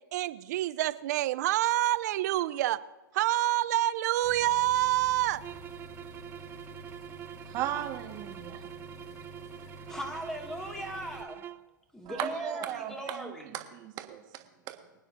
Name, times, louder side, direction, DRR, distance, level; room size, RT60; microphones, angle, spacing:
voice 1, 0.1-2.8 3.1-5.4, right 15 dB, 55° right, 15 dB, 0.6 m, -27 dB
sound 1, 4.2-11.2, equal, 30° left, 1.8 m, -49 dB
sound 2, 5.4-11.7, right 11 dB, 20° right, 0.3 m, -45 dB
voice 2, 7.5-8.7 12.0-14.8, right 11 dB, 35° right, 5 dB, 1.6 m, -37 dB
voice 3, 9.8-11.4 11.9-13.6, right 1 dB, 5° left, 1 dB, 2.1 m, -38 dB
24.5 x 9.4 x 2.7 m, 1.1 s
hypercardioid pair, 125°, 11 cm